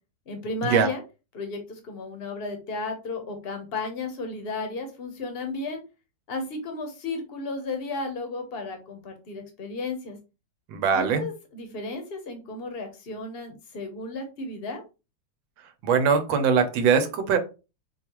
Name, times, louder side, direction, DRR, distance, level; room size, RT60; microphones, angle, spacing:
voice 1, 0.3-1.0 1.3-5.8 6.3-10.2 10.9-14.8, left 3 dB, 45° left, 0.8 m, -34 dB
voice 2, 10.7-11.2 15.8-17.4, right 6 dB, 90° right, 1.5 m, -21 dB
5.0 x 2.4 x 2.9 m
omnidirectional pair, 2.0 m